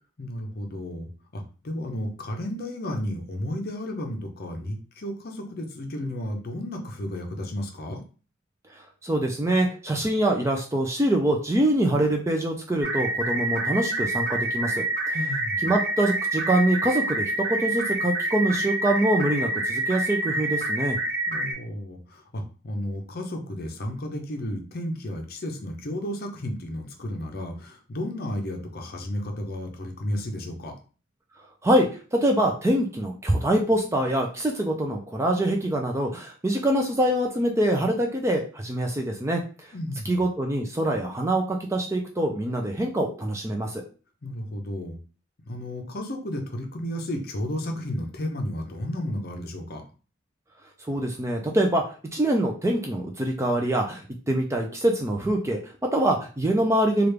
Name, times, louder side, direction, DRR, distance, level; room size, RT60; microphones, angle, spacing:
voice 1, 0.2-8.0 15.1-15.7 21.3-30.8 39.7-40.2 44.2-45.0 45.4-49.8, left 1 dB, 45° left, 3 dB, 0.6 m, -33 dB
voice 2, 8.7-15.2 15.6-21.0 31.6-39.7 40.1-43.8 50.8-57.1, right 1 dB, 15° right, 2 dB, 0.3 m, -24 dB
sound 1, 12.8-21.5, right 2 dB, 40° right, 1.3 m, -27 dB
3.3 x 2.4 x 3.2 m, 0.36 s
head